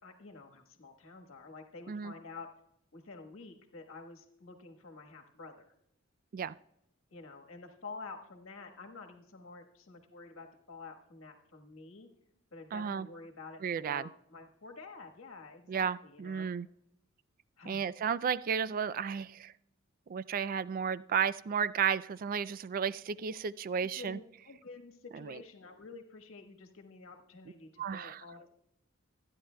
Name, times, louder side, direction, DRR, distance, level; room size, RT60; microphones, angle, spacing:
voice 1, 0.0-2.5 2.9-5.7 7.1-12.1 12.5-16.5 17.6-17.9 23.8-28.6, left 3 dB, 75° left, 4 dB, 1.3 m, -49 dB
voice 2, 12.7-13.1 13.6-14.1 15.7-16.7 17.7-19.5 20.1-24.2 25.1-25.4 27.8-28.2, right 7 dB, 45° right, 17 dB, 0.3 m, -33 dB
26.0 x 9.8 x 2.2 m, 0.80 s
head